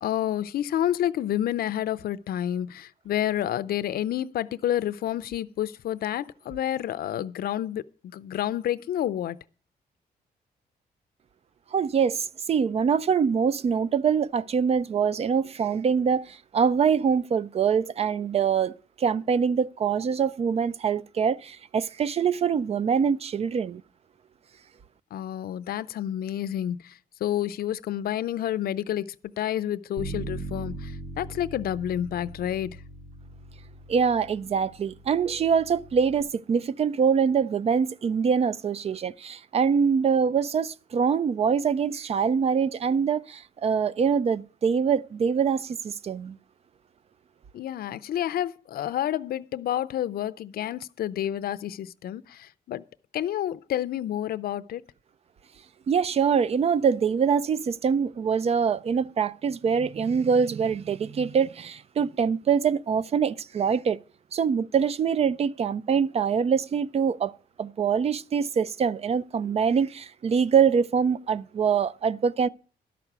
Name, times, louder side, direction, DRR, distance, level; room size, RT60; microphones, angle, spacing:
voice 1, 0.0-9.4 25.1-32.8 47.5-52.8 53.1-54.8, left 11 dB, 70° left, 0.5 m, -29 dB
voice 2, 11.7-23.8 33.9-46.4 55.9-64.0 64.3-67.3 67.6-72.5, right 6 dB, 40° right, 0.5 m, -24 dB
Bass guitar, 30.0-36.2, right 2 dB, 80° right, 3.4 m, -40 dB
12.5 x 6.0 x 8.0 m
cardioid pair, 115°, 16 cm